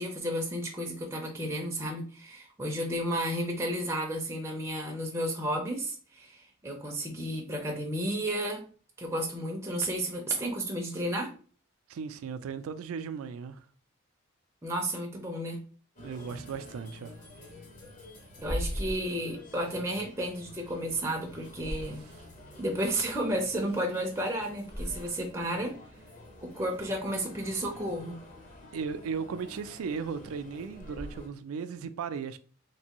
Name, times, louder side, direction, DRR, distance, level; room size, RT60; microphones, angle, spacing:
voice 1, 0.0-8.6 9.0-11.3 14.6-15.6 18.4-22.0 22.6-25.7 26.4-28.2, right 1 dB, 10° right, 0.4 m, -32 dB
voice 2, 11.9-13.6 16.0-17.1 21.9-22.0 28.7-32.4, right 6 dB, 80° right, 0.3 m, -36 dB
sound 1, 16.0-31.3, equal, 35° left, 0.7 m, -43 dB
3.3 x 2.6 x 2.8 m
head